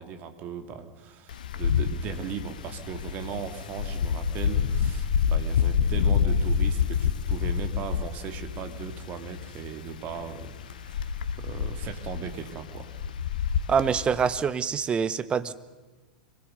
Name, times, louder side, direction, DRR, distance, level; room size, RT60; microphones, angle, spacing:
voice 1, 0.0-11.1 11.4-12.9, right 7 dB, 40° right, 7 dB, 2.5 m, -38 dB
Wind, 1.3-14.4, left 7 dB, 65° left, 1.1 m, -28 dB
voice 2, 13.7-15.5, right 6 dB, 20° right, 15 dB, 1.0 m, -25 dB
25.5 x 18.0 x 6.8 m, 1.3 s
figure-of-eight pair, 90°, 5 cm